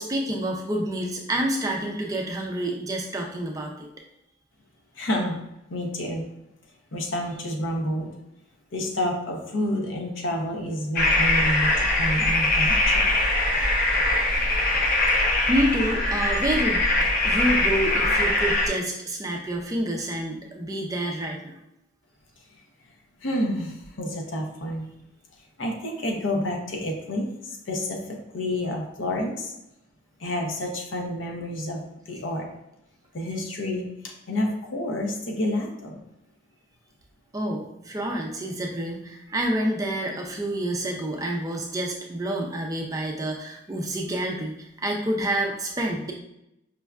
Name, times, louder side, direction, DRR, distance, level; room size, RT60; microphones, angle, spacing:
voice 1, 0.0-3.9 15.2-16.9 17.2-21.6 37.3-46.1, right 1 dB, 20° right, 1 dB, 0.4 m, -28 dB
voice 2, 4.9-5.4 5.7-6.3 6.9-8.1 8.7-13.1 22.5-22.6 23.2-24.9 25.4-29.5 30.2-32.5 33.1-36.0, left 1 dB, 90° left, 1 dB, 0.7 m, -29 dB
sound 1, 11.0-18.7, left 2 dB, 50° left, 0.6 m, -22 dB
5.1 x 2.2 x 2.3 m, 0.85 s
head